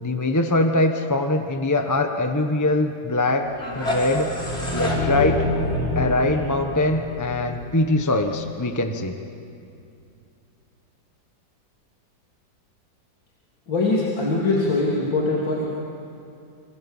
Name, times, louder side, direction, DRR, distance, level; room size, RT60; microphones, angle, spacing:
voice 1, 0.0-4.3 4.7-5.5 5.9-9.2, left 2 dB, 10° left, 5 dB, 1.0 m, -22 dB
sound 1, 3.4-8.3, left 1 dB, 35° left, 4.8 m, -27 dB
voice 2, 13.7-15.7, left 2 dB, 80° left, -5 dB, 3.7 m, -22 dB
27.0 x 25.0 x 7.3 m, 2.5 s
omnidirectional pair, 2.0 m